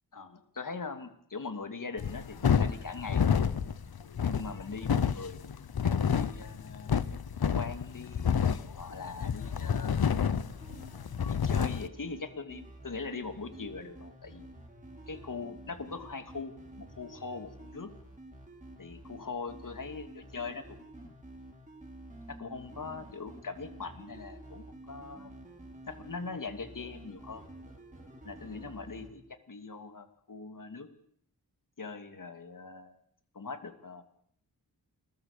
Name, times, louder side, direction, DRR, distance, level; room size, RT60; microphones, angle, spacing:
voice 1, 0.1-3.5 4.2-6.9 7.4-8.3 8.8-10.0 11.3-14.5 15.1-17.9 18.8-21.1 22.3-25.3 25.9-27.5 28.2-30.9 31.8-33.0 33.3-34.1, left 4 dB, 55° left, 8 dB, 2.9 m, -41 dB
sound 1, 2.0-11.9, left 7 dB, 70° left, 1.1 m, -29 dB
sound 2, 10.5-29.1, right 1 dB, 20° right, 6.2 m, -50 dB
28.5 x 22.0 x 6.9 m, 0.66 s
wide cardioid pair, 90°, 39 cm